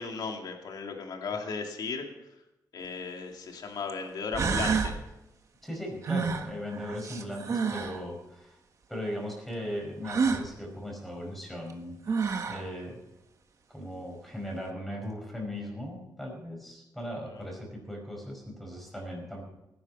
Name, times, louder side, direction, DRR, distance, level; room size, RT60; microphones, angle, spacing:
voice 1, 0.0-2.1 2.7-5.0, left 4 dB, 70° left, 3 dB, 2.5 m, -35 dB
sound 1, 2.8-2.9 3.9-4.0 4.3-5.0 6.0-8.0 10.0-10.5 11.7-11.8 12.1-12.7, right 5 dB, 45° right, 1.4 m, -29 dB
voice 2, 5.6-8.6 8.9-12.2 12.5-13.0 13.7-19.4, equal, ahead, 0 dB, 5.0 m, -38 dB
18.0 x 10.5 x 5.5 m, 0.92 s
wide cardioid pair, 140°, 7 cm